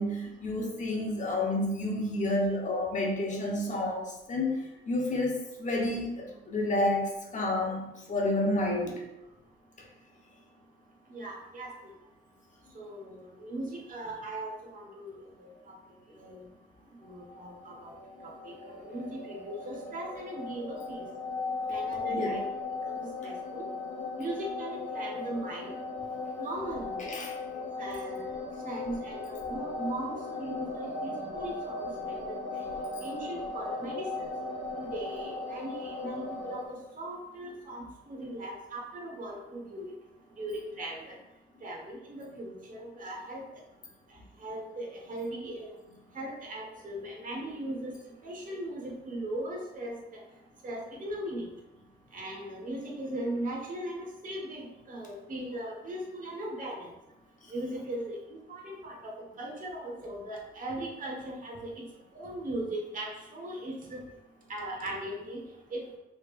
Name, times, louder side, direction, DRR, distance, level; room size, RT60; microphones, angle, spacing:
voice 1, 0.0-9.0 22.1-22.4 27.0-27.3, left 1 dB, 40° left, -1 dB, 1.2 m, -30 dB
voice 2, 11.1-11.7 12.7-15.5 16.2-16.5 17.0-17.9 18.2-21.0 21.7-22.4 22.9-23.6 24.2-25.8 26.4-27.0 27.8-28.4 28.6-32.3 33.0-34.3 34.8-39.8 40.4-41.2 41.6-43.4 44.4-45.7 46.1-47.9 48.2-50.2 50.6-51.5 52.1-56.9 57.5-61.8 62.1-64.0 64.5-65.4 65.7-65.8, right 1 dB, 40° right, -1 dB, 1.3 m, -38 dB
sound 1, 17.1-36.6, left 3 dB, 75° left, 1.2 m, -37 dB
5.4 x 3.3 x 2.5 m, 0.94 s
cardioid pair, 90°, 20 cm